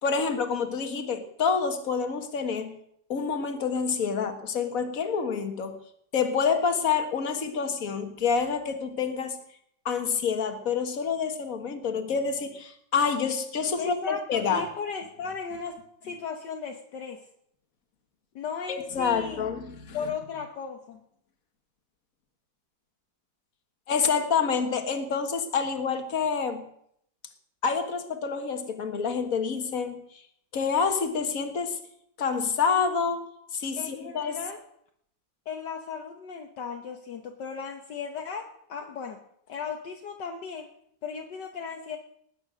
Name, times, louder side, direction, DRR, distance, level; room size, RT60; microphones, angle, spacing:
voice 1, 0.0-2.7 3.1-5.8 6.1-9.4 9.9-14.7 18.7-20.0 23.9-26.6 27.6-30.0 30.5-31.8 32.2-33.2 33.5-34.4, left 6 dB, 45° left, 6 dB, 1.9 m, -27 dB
voice 2, 13.8-17.2 18.3-19.4 19.9-21.0 33.8-34.6 35.5-39.2 39.5-40.7 41.0-42.0, left 5 dB, 65° left, 4 dB, 1.6 m, -36 dB
19.0 x 9.4 x 6.3 m, 0.70 s
omnidirectional pair, 2.1 m